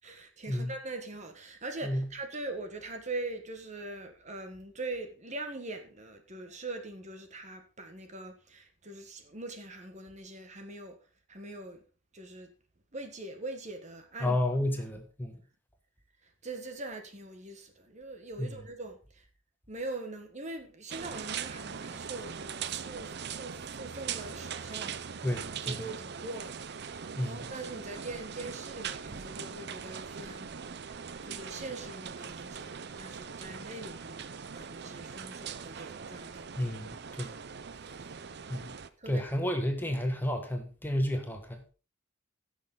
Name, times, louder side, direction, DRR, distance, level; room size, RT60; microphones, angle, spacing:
voice 1, 0.0-11.0 11.3-11.8 12.1-12.5 12.9-14.4 16.2-19.3 19.7-25.0 25.6-26.8 27.2-30.5 31.2-36.5 39.0-39.3, right 2 dB, 35° right, 1.5 m, -42 dB
voice 2, 14.2-15.4 18.4-18.5 25.2-25.7 27.2-27.4 36.6-37.3 38.5-38.7 39.1-41.6, left 1 dB, 10° left, 1.4 m, -31 dB
sound 1, 20.9-38.9, right 7 dB, 55° right, 0.6 m, -41 dB
16.0 x 6.5 x 3.8 m
head